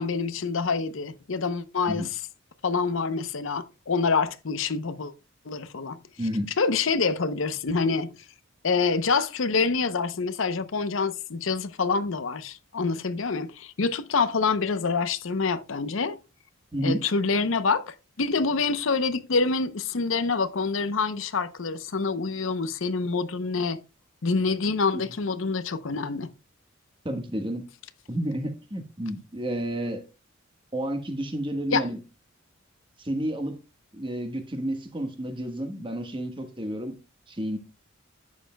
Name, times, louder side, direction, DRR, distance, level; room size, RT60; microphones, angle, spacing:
voice 1, 0.0-2.1 2.6-5.1 5.5-6.0 6.6-8.1 8.6-16.2 16.8-23.8 24.2-26.3 31.7-31.9, left 4 dB, 70° left, 0.7 m, -26 dB
voice 2, 6.2-6.5 16.7-17.0 24.9-25.0 27.0-27.7 28.1-30.0 30.7-32.0 33.0-33.6 33.9-36.9 37.3-37.6, right 1 dB, 25° right, 1.4 m, -30 dB
11.0 x 8.5 x 2.2 m
head